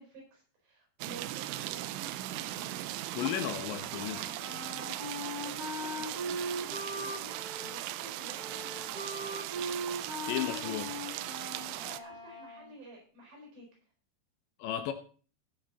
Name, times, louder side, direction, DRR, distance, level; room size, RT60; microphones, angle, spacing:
voice 1, 0.0-3.1 4.8-9.5 11.8-13.7, right 1 dB, 60° right, 7.0 m, -51 dB
sound 1, 1.0-12.0, right 15 dB, 85° right, 3.0 m, -39 dB
voice 2, 3.1-4.3 10.3-10.9 14.6-14.9, left 11 dB, 75° left, 2.9 m, -34 dB
Wind instrument woodwind instrument, 3.8-12.7, right 1 dB, 10° right, 3.1 m, -40 dB
17.0 x 6.3 x 4.1 m
omnidirectional pair, 5.5 m